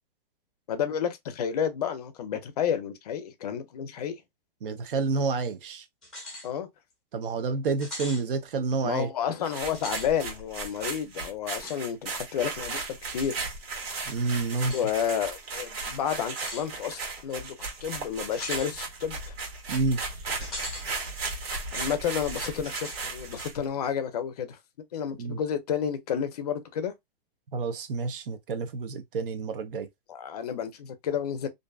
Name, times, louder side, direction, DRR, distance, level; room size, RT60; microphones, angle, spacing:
voice 1, 0.7-4.2 6.4-6.7 8.8-13.4 14.7-17.5 17.8-19.3 21.7-24.6 24.9-26.9 30.1-31.5, left 8 dB, 45° left, 0.5 m, -31 dB
voice 2, 4.6-5.8 7.1-9.1 14.1-14.7 19.7-20.0 25.2-25.4 27.5-29.9, right 4 dB, 65° right, 0.7 m, -29 dB
sound 1, 6.0-6.5 6.9-7.0 7.8-8.2 9.7-10.1 11.6-11.8 13.2-13.3 14.6-14.9 16.4-16.7 18.3-18.7 20.4-20.9 21.3-21.4 22.6-23.0, left 1 dB, ahead, 0.8 m, -39 dB
sound 2, 9.4-23.6, right 3 dB, 85° right, 1.4 m, -36 dB
2.5 x 2.3 x 2.3 m
hypercardioid pair, 175°, 30 cm